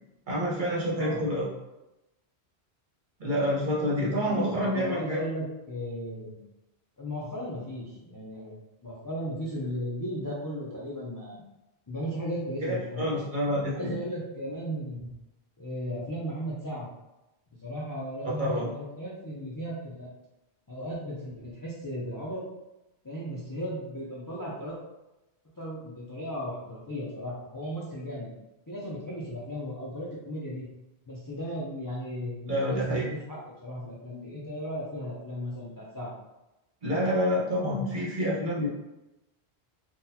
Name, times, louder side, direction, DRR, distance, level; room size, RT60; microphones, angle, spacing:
voice 1, 0.3-1.5 3.2-5.2 12.6-13.9 18.2-18.7 32.5-33.1 36.8-38.7, equal, 50° right, -6 dB, 1.1 m, -28 dB
voice 2, 0.9-1.3 4.3-6.4 7.0-11.4 11.9-13.1 13.7-15.1 15.6-16.9 17.6-20.1 20.7-22.4 23.0-24.8 25.6-28.3 28.7-30.7 31.1-36.1, equal, 30° left, -6 dB, 0.4 m, -36 dB
3.9 x 2.3 x 2.7 m, 0.96 s
omnidirectional pair, 1.1 m